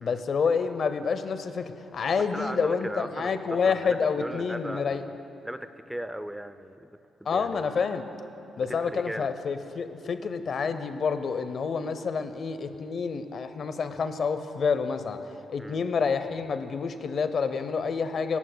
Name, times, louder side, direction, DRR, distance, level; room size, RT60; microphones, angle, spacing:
voice 1, 0.0-5.0 7.3-8.0 8.6-15.2 15.5-18.4, left 5 dB, 45° left, 10 dB, 0.6 m, -28 dB
voice 2, 2.3-5.1 5.4-6.9 7.2-7.7 8.7-9.3 15.6-15.8, right 1 dB, 5° right, 11 dB, 0.4 m, -37 dB
24.5 x 11.0 x 2.2 m, 2.9 s
cardioid pair, 150°, 0 cm